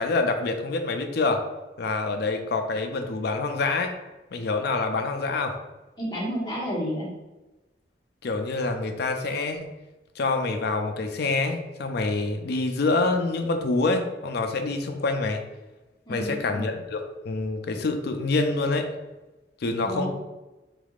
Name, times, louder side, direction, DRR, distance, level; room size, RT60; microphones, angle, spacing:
voice 1, 0.0-1.4 1.8-3.9 4.3-5.6 8.2-9.7 10.2-15.4 16.1-18.9 19.6-20.1, left 3 dB, 65° left, 5 dB, 0.4 m, -26 dB
voice 2, 6.0-7.1 16.1-16.6 19.8-20.1, equal, 25° left, -7 dB, 1.1 m, -30 dB
3.5 x 3.5 x 2.4 m, 1.1 s
head